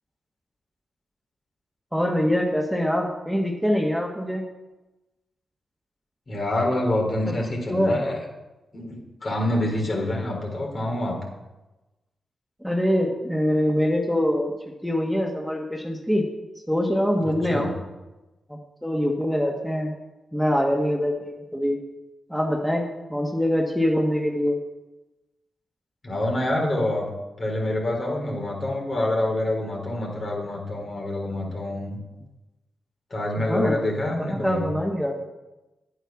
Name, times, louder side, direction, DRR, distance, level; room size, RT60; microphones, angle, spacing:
voice 1, 1.9-4.4 7.7-8.0 12.6-14.5 14.8-16.2 16.7-17.8 18.5-19.9 20.3-21.8 22.3-22.8 23.1-24.6 33.5-33.8 34.2-35.3, equal, ahead, 0 dB, 1.9 m, -24 dB
voice 2, 6.3-8.2 8.7-11.1 17.2-17.7 26.0-27.1 27.4-32.0 33.1-34.7, left 1 dB, 50° left, 0 dB, 4.0 m, -26 dB
9.0 x 8.3 x 6.0 m, 1.1 s
supercardioid pair, 45°, 0 cm